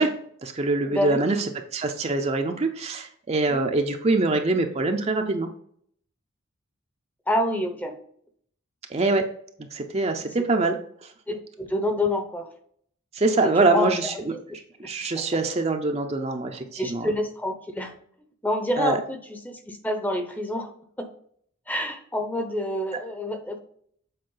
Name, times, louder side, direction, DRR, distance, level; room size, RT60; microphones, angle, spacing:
voice 1, 0.0-1.4 1.7-5.5 8.9-9.3 9.7-11.1 13.1-17.1 18.8-19.0, right 3 dB, 30° right, 4 dB, 0.5 m, -24 dB
voice 2, 0.8-1.2 3.5-3.7 7.3-8.0 10.2-10.5 11.3-12.5 13.3-14.6 15.1-15.3 16.6-18.0 18.4-20.7 21.0-21.1 21.7-23.6, left 1 dB, 10° left, 7 dB, 0.7 m, -28 dB
7.8 x 4.5 x 3.9 m, 0.63 s
head